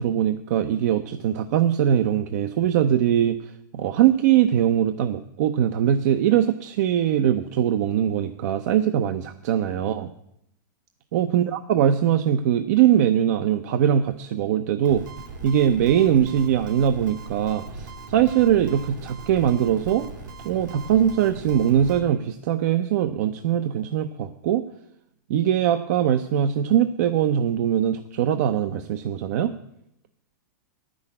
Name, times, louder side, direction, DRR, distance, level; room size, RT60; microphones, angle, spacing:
voice 1, 0.0-10.1 11.1-15.0 15.4-20.1 20.4-24.6 25.3-29.5, right 10 dB, 55° right, 9 dB, 0.6 m, -21 dB
sound 1, 14.8-22.0, right 3 dB, 90° right, 2.9 m, -39 dB
9.9 x 6.3 x 8.7 m, 0.77 s
hypercardioid pair, 145°, 10 cm